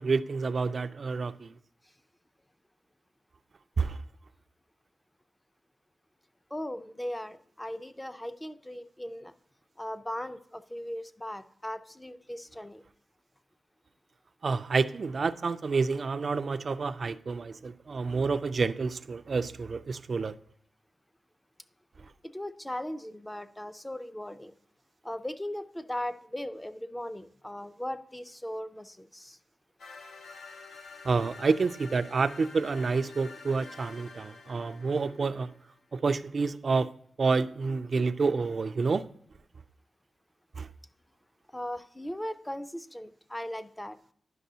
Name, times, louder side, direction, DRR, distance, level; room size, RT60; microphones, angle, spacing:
voice 1, 0.0-1.5 3.8-4.0 14.4-20.3 31.0-35.5 35.9-36.9 37.2-39.1 40.6-40.7, right 4 dB, 55° right, 0.3 m, -28 dB
voice 2, 6.5-9.3 9.8-12.8 22.2-24.5 25.0-29.4 41.5-44.0, left 1 dB, 10° left, 0.5 m, -38 dB
sound 1, 29.8-35.7, left 4 dB, 85° left, 0.8 m, -49 dB
10.0 x 6.0 x 2.8 m
cardioid pair, 70°, 0 cm